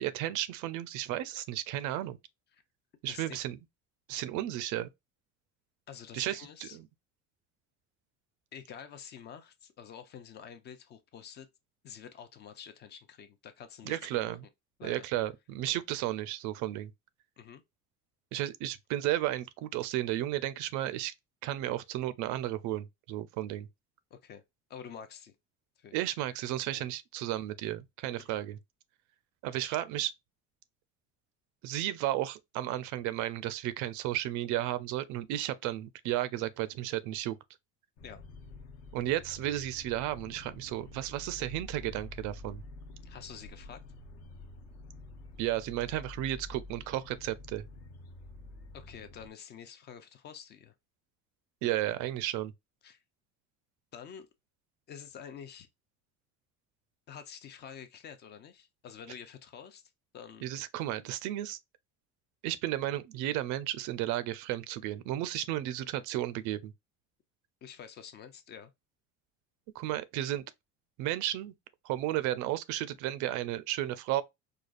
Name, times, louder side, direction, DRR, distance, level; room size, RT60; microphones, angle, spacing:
voice 1, 0.0-2.2 3.0-3.6 4.1-4.9 6.1-6.9 13.9-14.5 14.8-16.9 18.3-21.1 21.4-23.7 25.9-28.6 29.4-30.1 31.6-37.4 38.9-42.6 45.4-47.6 51.6-52.5 60.4-61.6 62.4-66.7 69.7-70.4 71.0-71.5 71.8-74.2, right 14 dB, 70° right, 0.5 m, -33 dB
voice 2, 3.1-3.4 5.9-6.8 8.5-11.5 11.8-14.4 14.8-15.1 17.4-17.6 24.1-24.4 24.7-25.3 25.8-26.0 26.7-26.9 28.2-28.4 38.0-38.2 43.0-43.8 48.7-50.7 52.8-53.0 53.9-54.3 54.9-55.7 57.1-59.8 60.1-60.5 67.6-68.7, left 8 dB, 35° left, 0.5 m, -48 dB
sound 1, 38.0-49.3, left 2 dB, 55° left, 0.9 m, -48 dB
4.9 x 2.3 x 2.4 m
cardioid pair, 180°, 31 cm